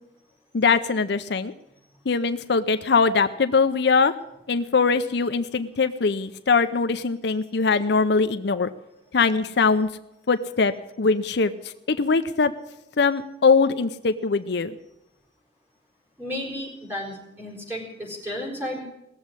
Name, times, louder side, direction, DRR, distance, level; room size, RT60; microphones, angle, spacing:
voice 1, 0.5-1.5 2.1-4.1 4.5-8.7 9.1-9.9 10.3-12.5 13.0-14.7, left 4 dB, 60° left, 10 dB, 0.6 m, -22 dB
voice 2, 16.2-18.8, left 1 dB, 10° right, -4 dB, 4.7 m, -33 dB
18.5 x 7.4 x 9.7 m, 0.88 s
head